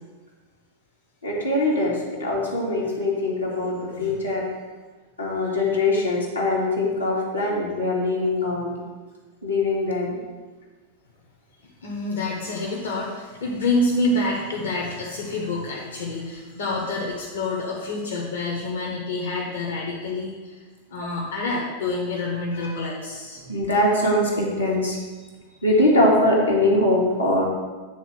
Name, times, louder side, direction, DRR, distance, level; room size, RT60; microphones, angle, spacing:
voice 1, 1.2-4.4 5.2-8.8 9.4-10.2 22.6-22.7 23.5-25.0 25.6-27.4, left 1 dB, 85° left, -4 dB, 2.0 m, -22 dB
voice 2, 11.8-20.6 20.9-23.4 25.2-25.6, left 2 dB, 65° left, -3 dB, 1.4 m, -27 dB
9.3 x 4.1 x 6.3 m, 1.3 s
figure-of-eight pair, 90°, 0 cm